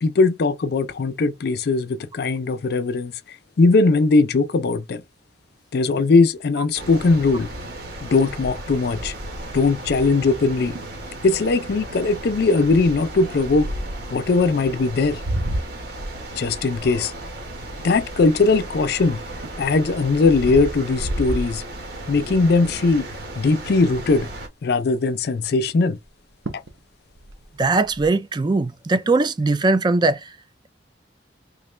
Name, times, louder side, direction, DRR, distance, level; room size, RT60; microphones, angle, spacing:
voice 1, 0.0-3.1 3.6-5.0 5.7-7.5 8.0-9.1 9.5-10.8 11.2-13.7 14.1-15.2 16.4-17.1 17.8-19.2 19.6-21.6 22.1-23.1 23.4-24.3 24.6-26.0 26.5-26.6, left 3 dB, 60° left, 0.4 m, -19 dB
sound 1, 6.7-24.5, right 1 dB, 60° right, 1.2 m, -35 dB
sound 2, 8.4-9.9 10.4-10.5 10.8-11.0 11.5-11.8 12.7-14.1 14.8-18.7 19.2-22.2 22.7-23.0 23.2-23.3 23.6-24.4 26.0-26.1 26.5-26.8 27.1-28.1, right 1 dB, 90° right, 0.7 m, -31 dB
voice 2, 27.6-30.2, right 3 dB, 25° right, 0.3 m, -20 dB
4.0 x 2.1 x 3.1 m
head